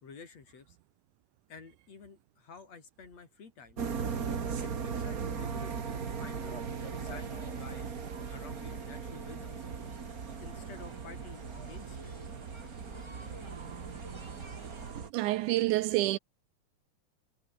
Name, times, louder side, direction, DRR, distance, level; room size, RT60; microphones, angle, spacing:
voice 1, 0.0-0.8 1.5-3.8 4.6-7.9 8.3-9.7 10.4-12.2, left 5 dB, 50° left, 4.7 m, -51 dB
sound 1, 3.8-15.1, right 6 dB, 40° right, 1.5 m, -38 dB
sound 2, 5.5-14.9, right 1 dB, 10° right, 4.3 m, -51 dB
voice 2, 15.1-16.2, right 17 dB, 80° right, 2.0 m, -27 dB
omnidirectional pair, 3.8 m